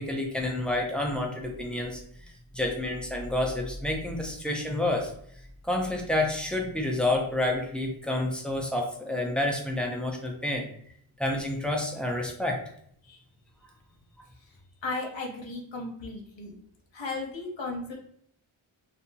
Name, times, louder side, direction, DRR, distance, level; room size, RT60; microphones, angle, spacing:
voice 1, 0.0-5.1 5.6-10.7 11.2-12.6, left 1 dB, ahead, 1 dB, 0.5 m, -29 dB
voice 2, 14.8-16.6 16.9-17.9, left 3 dB, 65° left, 0 dB, 0.7 m, -35 dB
2.7 x 2.3 x 2.6 m, 0.67 s
wide cardioid pair, 80°, 49 cm